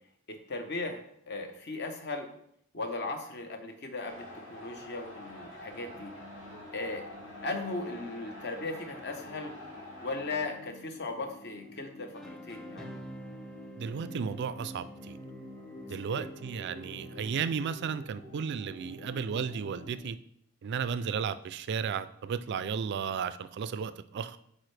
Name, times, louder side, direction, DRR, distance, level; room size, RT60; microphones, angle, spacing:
voice 1, 0.3-2.3 2.7-6.1 6.7-7.0 7.4-9.6 10.0-13.0 16.0-16.3, left 3 dB, 50° left, 6 dB, 0.9 m, -37 dB
sound 1, 4.0-10.5, left 1 dB, 65° left, 2.9 m, -47 dB
sound 2, 5.7-20.0, left 1 dB, 85° left, 2.5 m, -49 dB
sound 3, 12.1-18.1, right 1 dB, ahead, 0.6 m, -48 dB
voice 2, 13.8-15.2 15.9-20.2 20.6-24.4, right 6 dB, 50° right, 14 dB, 0.3 m, -34 dB
8.8 x 4.4 x 3.3 m, 0.71 s
head